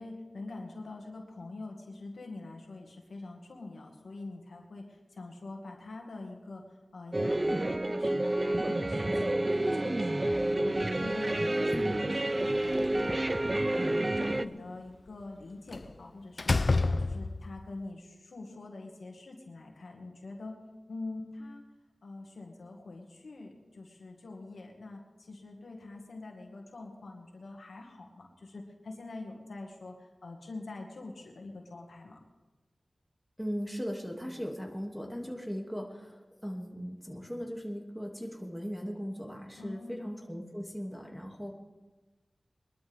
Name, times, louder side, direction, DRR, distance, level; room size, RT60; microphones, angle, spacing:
voice 1, 0.0-6.6 6.9-13.4 13.7-20.6 20.9-21.6 22.0-32.2 39.6-40.0, left 2 dB, 90° left, 1 dB, 2.0 m, -45 dB
sound 1, 7.1-14.5, right 1 dB, 35° right, 0.5 m, -29 dB
Slam, 12.5-13.6 15.7-15.9 16.4-17.6, left 3 dB, 60° left, 0.4 m, -29 dB
voice 2, 33.4-41.5, equal, ahead, 0 dB, 2.5 m, -38 dB
22.0 x 12.0 x 3.6 m, 1.2 s
cardioid pair, 50°, 0 cm